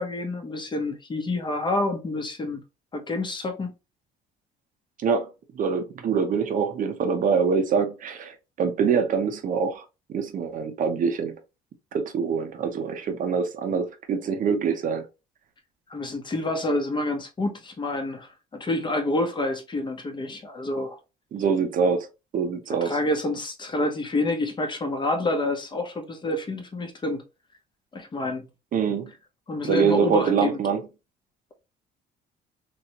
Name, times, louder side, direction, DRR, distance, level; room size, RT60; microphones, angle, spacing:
voice 1, 0.0-2.6 2.9-3.7 15.9-21.0 22.8-27.2 27.9-28.5 29.5-30.6, left 2 dB, 25° left, 0.9 m, -28 dB
voice 2, 5.6-11.3 11.9-15.0 21.3-22.1 22.3-23.0 28.7-29.1 29.6-30.8, right 6 dB, 50° right, 0.7 m, -25 dB
3.0 x 2.9 x 2.8 m
cardioid pair, 110°, 17 cm